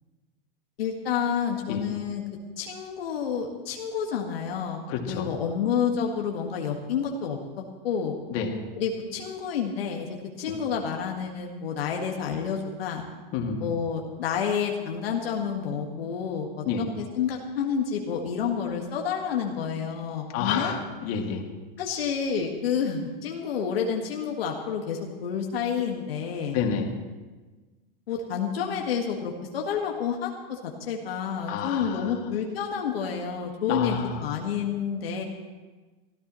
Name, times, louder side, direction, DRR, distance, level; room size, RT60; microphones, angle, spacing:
voice 1, 0.8-2.2 2.6-7.4 7.8-8.2 8.8-10.1 10.4-13.0 13.6-16.6 17.0-20.7 21.8-26.6 28.1-34.0 34.2-35.2, left 7 dB, 85° left, 1 dB, 1.8 m, -29 dB
voice 2, 4.9-5.3 8.3-8.5 10.5-10.6 13.3-13.7 16.6-16.8 20.3-21.4 26.5-26.9 31.5-32.2 33.7-34.2, left 7 dB, 50° left, 2 dB, 2.4 m, -29 dB
23.5 x 14.0 x 3.1 m, 1.3 s
supercardioid pair, 125°, 29 cm